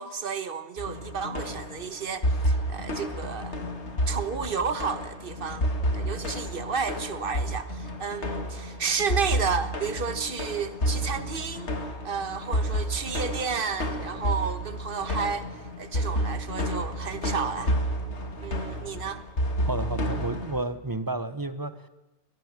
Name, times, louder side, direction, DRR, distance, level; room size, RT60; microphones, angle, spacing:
voice 1, 0.0-3.6 4.1-5.7 5.9-11.7 12.0-15.5 15.8-17.7 18.4-19.2, right 5 dB, 50° right, 1.5 m, -32 dB
sound 1, 0.8-20.6, equal, 75° left, 2.6 m, -30 dB
voice 2, 19.6-21.9, right 2 dB, 20° right, 1.0 m, -31 dB
23.0 x 18.0 x 7.4 m
omnidirectional pair, 1.2 m